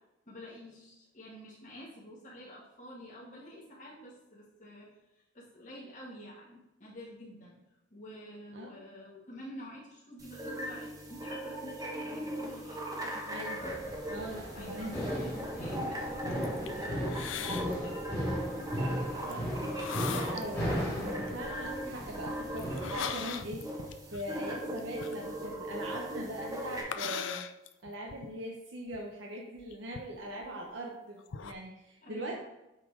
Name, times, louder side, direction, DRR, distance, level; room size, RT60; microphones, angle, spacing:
voice 1, 0.3-4.9 5.3-7.6 7.9-13.8 14.5-17.9 32.0-32.4, equal, 40° left, -7 dB, 2.1 m, -49 dB
sound 1, 10.2-26.8, right 1 dB, 20° right, 1.2 m, -39 dB
sound 2, 13.6-22.9, equal, 15° left, 2.2 m, -36 dB
voice 2, 14.1-14.9 19.3-23.6 24.1-27.5 27.8-32.4, right 1 dB, 70° right, -1 dB, 0.9 m, -41 dB
sound 3, 16.3-16.7 17.1-17.7 18.1-18.3 19.3-19.4 19.7-20.5 20.8-21.4 22.2-26.0 26.9-28.3 28.9-29.0 29.6-30.8 31.2-31.5, left 7 dB, 80° left, 0.5 m, -39 dB
8.4 x 4.1 x 4.9 m, 0.94 s
head